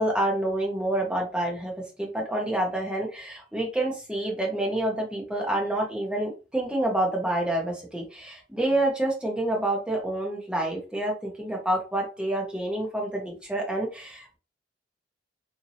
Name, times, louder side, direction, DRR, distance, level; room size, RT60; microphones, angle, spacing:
voice 1, 0.0-14.4, right 1 dB, 5° right, -1 dB, 0.9 m, -28 dB
2.7 x 2.7 x 2.7 m, 0.32 s
head